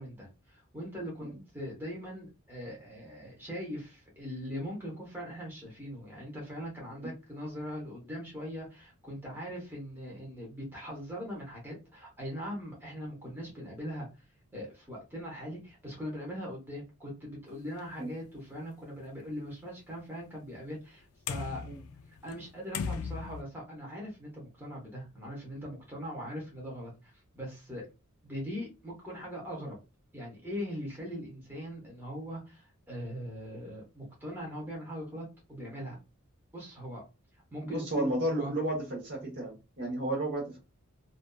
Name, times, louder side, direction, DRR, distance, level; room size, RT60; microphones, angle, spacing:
voice 1, 0.0-14.1 14.5-21.6 22.2-27.9 28.2-29.8 30.1-36.0 36.5-37.0 37.5-38.5, equal, 10° right, -3 dB, 0.9 m, -41 dB
sound 1, 17.8-17.9 18.3-18.4 21.3-22.5 22.7-23.4, left 5 dB, 65° left, 0.3 m, -37 dB
voice 2, 37.6-40.6, right 1 dB, 50° right, 1 dB, 0.9 m, -32 dB
2.6 x 2.3 x 2.2 m, 0.29 s
head